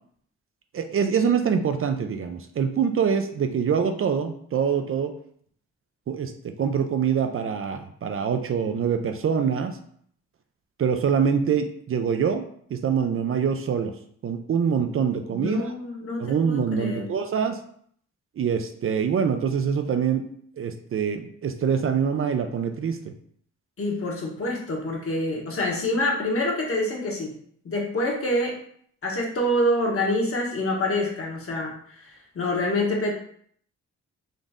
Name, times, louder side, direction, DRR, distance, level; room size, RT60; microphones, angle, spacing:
voice 1, 0.7-5.1 6.1-9.8 10.8-13.9 14.2-15.7 16.2-17.6 18.4-20.3 20.6-23.0, right 7 dB, 45° right, 7 dB, 0.4 m, -25 dB
voice 2, 15.3-17.1 23.8-27.3 27.6-28.6 29.0-33.1, left 1 dB, 50° left, -1 dB, 1.2 m, -26 dB
3.9 x 2.5 x 3.5 m, 0.62 s
cardioid pair, 75°, 29 cm